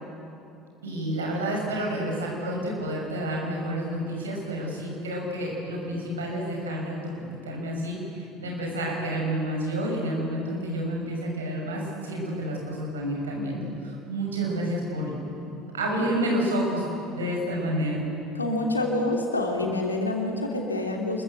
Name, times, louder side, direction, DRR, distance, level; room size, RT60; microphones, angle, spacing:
voice 1, 0.8-15.1 15.7-16.8 17.1-18.0, right 1 dB, 80° right, -1 dB, 6.4 m, -29 dB
voice 2, 18.3-21.2, left 2 dB, 90° left, 1 dB, 2.9 m, -27 dB
27.5 x 22.0 x 8.1 m, 2.7 s
figure-of-eight pair, 65°, 0 cm